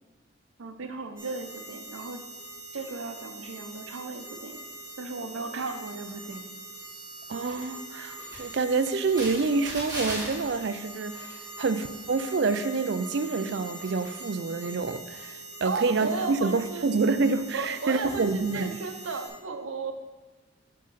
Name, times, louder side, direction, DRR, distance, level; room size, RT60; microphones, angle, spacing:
voice 1, 0.6-2.2 2.7-4.6 5.0-6.6 15.6-16.9 17.5-19.9, right 4 dB, 85° right, 7 dB, 0.8 m, -35 dB
sound 1, 1.2-19.3, right 2 dB, 20° right, 2.4 m, -41 dB
voice 2, 7.3-18.8, right 4 dB, 55° right, 11 dB, 0.4 m, -27 dB
6.5 x 6.5 x 4.1 m, 1.3 s
head